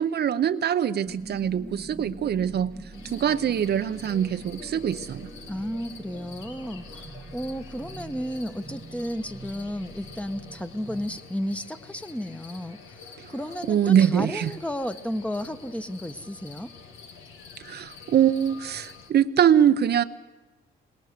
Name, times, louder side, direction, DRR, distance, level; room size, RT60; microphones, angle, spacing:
voice 1, 0.0-2.7 3.1-5.3 13.2-13.3 13.7-14.5 17.6-20.0, right 9 dB, 60° right, 11 dB, 0.7 m, -23 dB
sound 1, 1.0-11.2, right 3 dB, 20° right, 1.4 m, -44 dB
sound 2, 2.9-19.1, left 5 dB, 90° left, 1.9 m, -47 dB
voice 2, 5.5-7.1 7.3-16.7, equal, 5° left, 10 dB, 1.1 m, -33 dB
22.5 x 20.0 x 6.7 m, 1.2 s
supercardioid pair, 65°, 20 cm